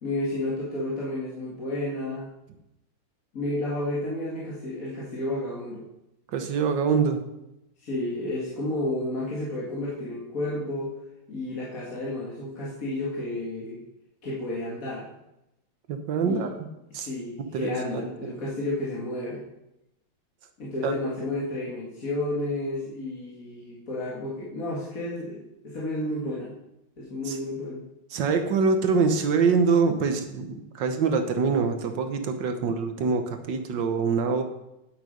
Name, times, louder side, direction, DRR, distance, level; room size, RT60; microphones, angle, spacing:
voice 1, 0.0-2.3 3.3-5.9 7.8-11.0 11.3-13.8 14.2-15.1 16.2-16.5 16.9-19.4 20.6-26.5 27.0-27.8, left 1 dB, 45° left, -6 dB, 2.3 m, -31 dB
voice 2, 6.3-7.2 15.9-16.5 16.9-17.1 17.5-18.1 20.8-20.9 27.3-27.4 28.1-34.4, right 5 dB, 75° right, 7 dB, 1.7 m, -24 dB
9.4 x 8.0 x 5.2 m, 0.90 s
omnidirectional pair, 2.0 m